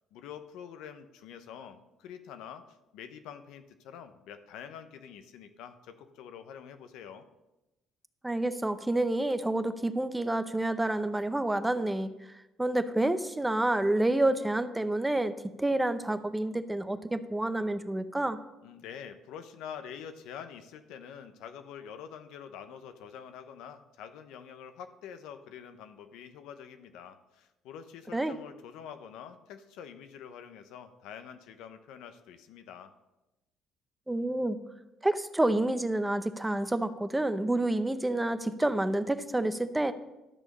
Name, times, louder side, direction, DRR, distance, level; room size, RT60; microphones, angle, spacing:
voice 1, 0.1-7.2 18.6-32.9, left 8 dB, 85° left, 9 dB, 0.9 m, -46 dB
voice 2, 8.2-12.1 12.6-18.4 28.1-28.4 34.1-34.6 35.0-39.9, right 1 dB, 10° right, 11 dB, 0.7 m, -28 dB
12.5 x 6.4 x 5.4 m, 0.98 s
cardioid pair, 105°, 0 cm